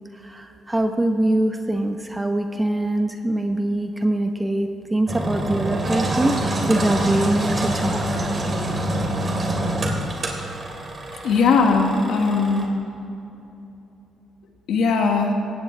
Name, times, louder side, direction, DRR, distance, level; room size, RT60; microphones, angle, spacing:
voice 1, 0.2-8.3, right 1 dB, 15° right, 5 dB, 1.1 m, -23 dB
Engine, 5.1-12.6, right 1 dB, 35° right, 2.7 m, -26 dB
voice 2, 11.2-12.7 14.7-15.3, left 4 dB, 75° left, 2 dB, 1.9 m, -19 dB
18.0 x 16.0 x 3.4 m, 2.9 s
cardioid pair, 90°, 0 cm